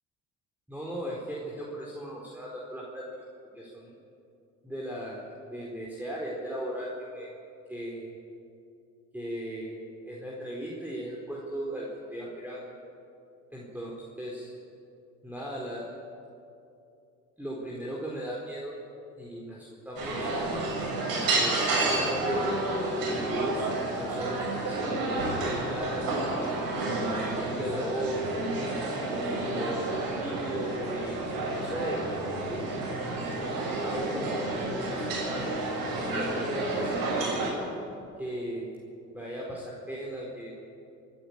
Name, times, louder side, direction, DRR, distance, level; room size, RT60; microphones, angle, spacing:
voice 1, 0.7-3.0 3.5-3.9 4.6-7.3 7.7-8.1 9.1-12.7 13.5-13.9 14.2-14.5 15.2-15.9 17.4-18.7 19.2-20.4 20.7-20.9 21.3-22.5 23.0-23.7 24.0-26.1 26.8-28.3 29.1-31.2 31.5-33.0 33.3-35.6 36.1-37.4 38.2-38.7 39.1-40.5, right 1 dB, 5° right, -4 dB, 4.4 m, -37 dB
sound 1, 20.0-37.5, right 2 dB, 60° right, 6.8 m, -30 dB
26.0 x 11.5 x 8.9 m, 2.7 s
hypercardioid pair, 60°, 40 cm